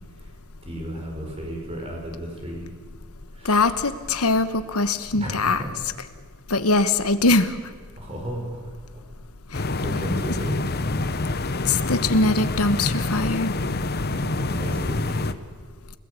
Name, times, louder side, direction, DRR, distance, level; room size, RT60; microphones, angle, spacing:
voice 1, 0.6-2.7 3.3-3.6 5.1-5.3 5.6-5.7 8.0-8.6 8.9-9.0 9.8-10.7 14.1-15.4, equal, 25° right, 0 dB, 6.0 m, -34 dB
voice 2, 3.4-5.6 6.5-7.5 9.5-9.6 11.7-13.5, left 3 dB, 80° left, 11 dB, 1.3 m, -22 dB
sound 1, 9.5-15.3, left 2 dB, 45° left, 1.0 m, -26 dB
30.0 x 18.0 x 8.5 m, 1.5 s
head